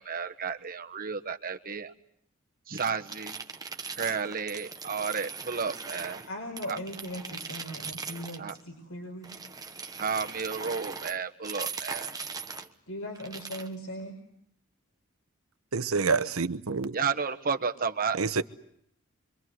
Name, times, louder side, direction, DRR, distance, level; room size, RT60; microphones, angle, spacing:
voice 1, 0.0-1.9 2.7-3.4 4.0-6.2 6.7-6.8 8.4-8.5 10.0-12.1 16.9-18.2, right 5 dB, 45° right, 7 dB, 1.5 m, -32 dB
sound 1, 2.7-6.3 6.6-8.6 9.2-12.7 13.2-13.7, right 5 dB, 20° right, 1.2 m, -40 dB
voice 2, 6.3-9.3 12.9-14.2, equal, 75° left, 1 dB, 5.1 m, -39 dB
voice 3, 15.7-17.0 18.1-18.4, right 4 dB, 85° right, 11 dB, 1.1 m, -27 dB
27.5 x 24.5 x 7.9 m, 0.70 s
head